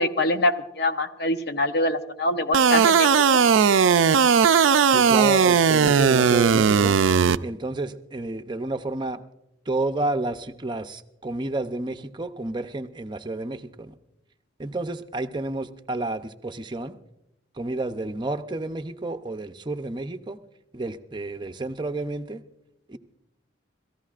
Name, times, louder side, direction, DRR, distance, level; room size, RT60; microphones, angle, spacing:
voice 1, 0.0-3.4, left 1 dB, 55° left, 8 dB, 0.7 m, -25 dB
sound 1, 2.5-7.4, right 6 dB, 85° right, 0.4 m, -18 dB
voice 2, 4.9-7.0 7.4-9.2 9.7-13.9 14.6-16.9 17.6-20.4 20.7-22.4 22.9-23.0, right 2 dB, 25° right, 7 dB, 0.6 m, -30 dB
28.5 x 14.5 x 2.5 m, 0.88 s
head